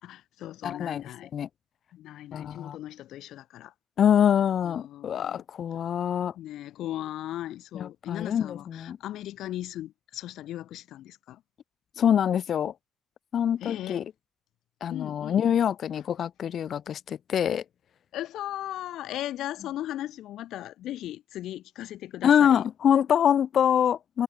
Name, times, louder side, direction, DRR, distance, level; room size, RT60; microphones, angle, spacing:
voice 1, 0.0-1.3 1.9-3.7 4.6-5.4 6.4-11.4 13.6-14.1 14.9-15.4 18.1-22.6, left 13 dB, 80° left, 3.4 m, -37 dB
voice 2, 0.6-1.0 1.3-1.5 2.3-2.8 4.0-6.3 7.7-9.0 12.0-12.7 13.3-14.0 14.8-17.6 22.2-24.2, left 9 dB, 60° left, 0.9 m, -25 dB
cardioid pair, 90°, 0 cm